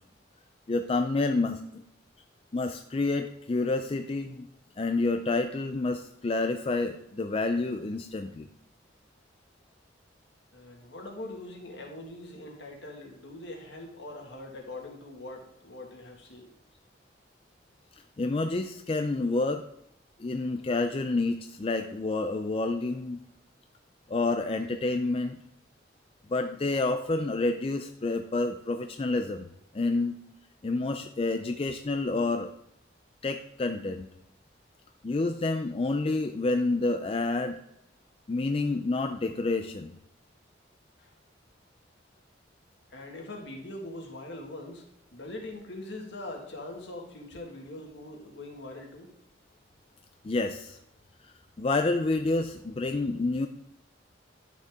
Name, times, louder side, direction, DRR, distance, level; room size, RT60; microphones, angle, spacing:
voice 1, 0.7-1.8 2.5-4.5 4.8-8.5 18.2-19.6 20.2-23.2 24.1-25.4 26.3-29.5 29.7-30.2 30.6-32.5 33.2-34.1 35.0-37.5 38.3-39.9 50.2-50.8 51.2-53.5, left 3 dB, 30° left, 7 dB, 0.4 m, -29 dB
voice 2, 10.5-16.5 41.0-41.1 42.9-44.9 45.1-49.1, left 2 dB, 65° left, 1 dB, 1.9 m, -42 dB
11.0 x 6.5 x 3.6 m, 0.81 s
head